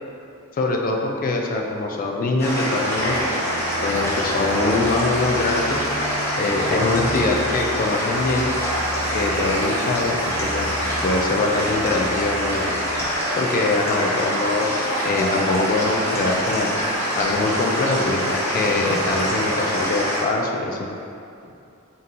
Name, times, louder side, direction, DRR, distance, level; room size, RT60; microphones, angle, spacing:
voice 1, 0.6-3.2 3.8-5.9 6.4-8.5 9.1-12.7 13.4-16.7 17.2-20.9, left 2 dB, 40° left, 1 dB, 0.4 m, -23 dB
sound 1, 2.4-20.2, equal, 10° left, 0.9 m, -25 dB
sound 2, 2.9-13.1, equal, 80° right, 0.4 m, -35 dB
3.7 x 2.8 x 3.7 m, 2.5 s
head